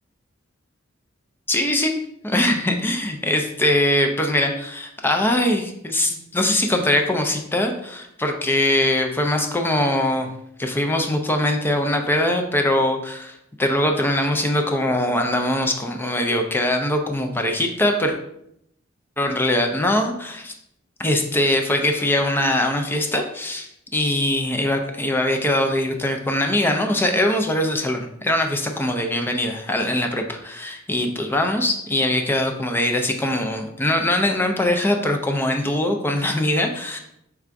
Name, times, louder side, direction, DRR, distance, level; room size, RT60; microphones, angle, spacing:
voice 1, 1.5-1.9 2.2-10.3 10.6-18.2 19.2-20.5 21.0-37.0, left 1 dB, 10° left, 4 dB, 0.4 m, -22 dB
3.4 x 2.5 x 4.5 m, 0.76 s
head